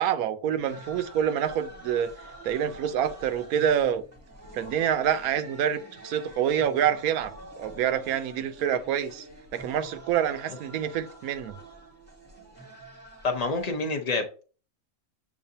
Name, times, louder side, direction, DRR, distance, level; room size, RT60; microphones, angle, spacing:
voice 1, 0.0-2.1 2.4-4.0 4.5-7.3 7.6-9.2 9.5-11.6, right 9 dB, 80° right, 1.0 m, -27 dB
sound 1, 0.7-13.7, right 1 dB, 10° right, 0.9 m, -47 dB
voice 2, 13.2-14.4, left 3 dB, 55° left, 0.4 m, -28 dB
7.2 x 2.5 x 2.7 m
omnidirectional pair, 1.6 m